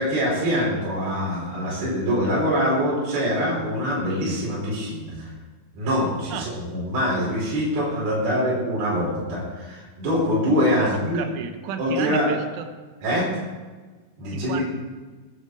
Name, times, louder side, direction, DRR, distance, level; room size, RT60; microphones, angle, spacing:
voice 1, 0.0-5.3 5.8-11.2 11.8-12.3 13.0-13.4 14.2-14.6, equal, 55° right, -5 dB, 6.4 m, -24 dB
voice 2, 6.3-6.6 10.8-12.7 14.3-14.7, right 7 dB, 85° right, 8 dB, 3.5 m, -33 dB
21.0 x 10.5 x 4.8 m, 1.3 s
omnidirectional pair, 5.4 m